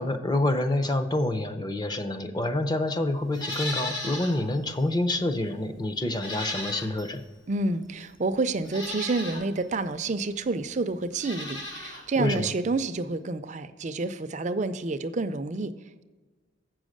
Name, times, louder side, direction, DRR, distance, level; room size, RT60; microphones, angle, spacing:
voice 1, 0.0-7.2 12.2-12.5, left 1 dB, 20° left, 9 dB, 0.6 m, -27 dB
Livestock farm animals working animals, 3.3-4.4 4.8-4.9 6.1-7.2 8.0-8.1 8.6-9.4 11.1-12.0 12.3-12.4, left 1 dB, 65° left, 2.4 m, -35 dB
voice 2, 7.5-15.7, right 3 dB, 40° right, 11 dB, 0.5 m, -29 dB
8.0 x 6.3 x 6.5 m, 1.3 s
head